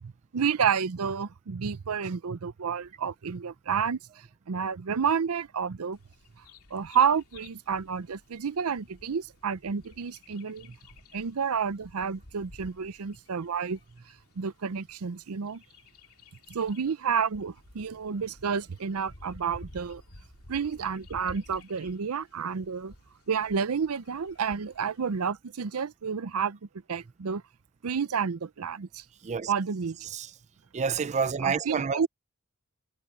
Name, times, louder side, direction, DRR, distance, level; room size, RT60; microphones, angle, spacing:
voice 1, 0.0-4.0 4.5-6.0 6.7-10.7 11.1-13.8 14.4-15.6 16.5-20.0 20.5-22.9 23.3-26.6 26.9-27.4 27.8-29.0 29.5-30.0 31.4-32.1, right 6 dB, 85° right, 0.6 m, -30 dB
Bird vocalization bird call bird song, 5.9-25.3, left 2 dB, 85° left, 2.8 m, -53 dB
voice 2, 30.7-32.1, right 6 dB, 35° right, 0.4 m, -28 dB
head